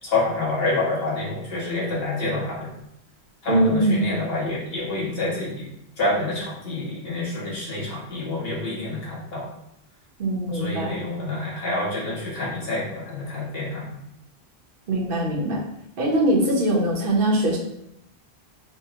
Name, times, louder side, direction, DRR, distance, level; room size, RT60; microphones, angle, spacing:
voice 1, 0.0-2.7 3.4-5.7 6.0-9.5 10.5-14.0, left 2 dB, 65° left, -6 dB, 1.5 m, -27 dB
voice 2, 3.5-4.1 10.2-10.9 14.9-15.6 16.0-17.6, right 1 dB, 55° right, -2 dB, 1.0 m, -21 dB
6.0 x 2.1 x 2.8 m, 0.80 s
omnidirectional pair, 1.1 m